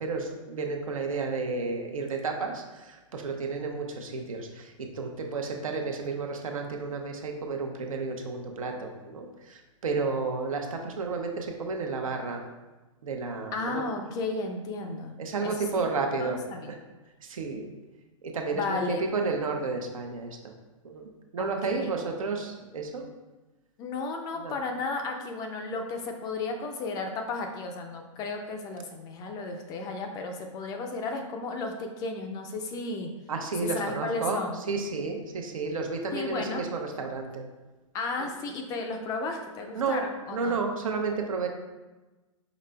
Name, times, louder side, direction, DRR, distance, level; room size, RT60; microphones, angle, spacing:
voice 1, 0.0-12.4 13.0-13.8 15.2-16.4 16.7-16.8 17.2-17.6 18.2-20.4 20.8-21.0 21.3-23.1 24.4-24.6 33.3-37.4 38.2-38.3 39.7-40.0 40.3-41.5, right 4 dB, 80° right, 3 dB, 0.7 m, -32 dB
voice 2, 13.5-15.1 15.4-15.9 16.2-16.7 18.5-19.0 21.4-21.9 23.8-33.1 33.6-34.6 36.1-36.6 37.9-40.6, left 3 dB, 20° left, 4 dB, 0.4 m, -34 dB
4.9 x 4.0 x 2.2 m, 1.2 s
hypercardioid pair, 130°, 17 cm